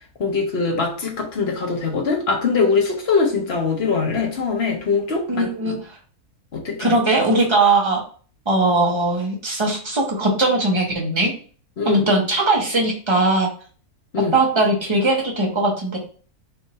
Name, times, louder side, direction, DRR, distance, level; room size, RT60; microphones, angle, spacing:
voice 1, 0.2-5.8 6.5-7.0 11.8-12.2 14.1-14.3, left 4 dB, 45° left, 0 dB, 1.2 m, -22 dB
voice 2, 5.3-5.7 6.8-8.0 8.5-11.3 11.8-13.5 14.3-16.0, right 2 dB, 20° right, -1 dB, 1.0 m, -19 dB
4.5 x 2.7 x 4.2 m, 0.43 s
omnidirectional pair, 1.6 m